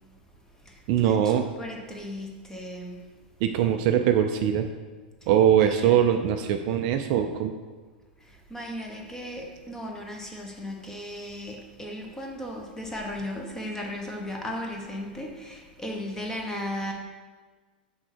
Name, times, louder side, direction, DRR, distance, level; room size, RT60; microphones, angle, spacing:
voice 1, 0.9-1.5 3.4-4.7 5.3-7.5, right 9 dB, 50° right, 6 dB, 0.5 m, -22 dB
voice 2, 1.6-3.0 5.6-5.9 8.5-16.9, left 1 dB, 10° left, 0 dB, 1.3 m, -36 dB
6.1 x 4.5 x 6.3 m, 1.4 s
figure-of-eight pair, 95°, 5 cm